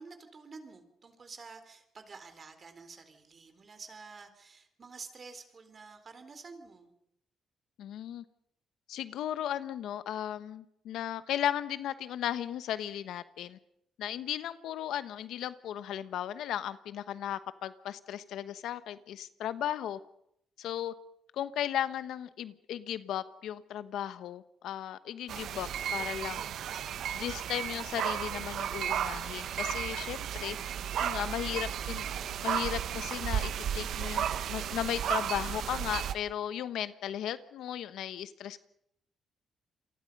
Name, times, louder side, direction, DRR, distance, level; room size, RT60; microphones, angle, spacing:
voice 1, 0.0-6.9 31.1-32.0, right 4 dB, 40° right, 9 dB, 3.8 m, -50 dB
voice 2, 7.8-8.2 8.9-13.6 14.0-20.0 20.6-20.9 21.3-26.4 27.1-30.6 31.0-32.1 32.4-38.6, left 11 dB, 80° left, 13 dB, 1.1 m, -36 dB
sound 1, 25.3-36.1, right 9 dB, 70° right, 1.1 m, -34 dB
28.5 x 23.5 x 5.4 m, 0.76 s
cardioid pair, 90°, 0 cm